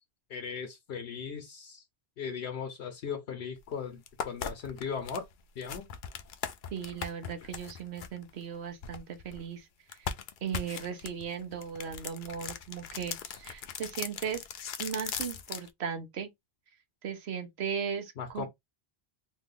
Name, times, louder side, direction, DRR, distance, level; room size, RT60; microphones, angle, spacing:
voice 1, 0.3-1.8 2.2-5.3 5.6-5.9 18.2-18.5, left 6 dB, 80° left, 0.9 m, -38 dB
sound 1, 3.6-3.7 4.1-9.4 9.9-15.7, left 7 dB, 60° left, 0.6 m, -39 dB
voice 2, 6.7-10.1 10.4-14.4 14.8-16.3 17.0-18.5, right 7 dB, 85° right, 1.1 m, -37 dB
3.1 x 2.3 x 3.6 m
omnidirectional pair, 1.1 m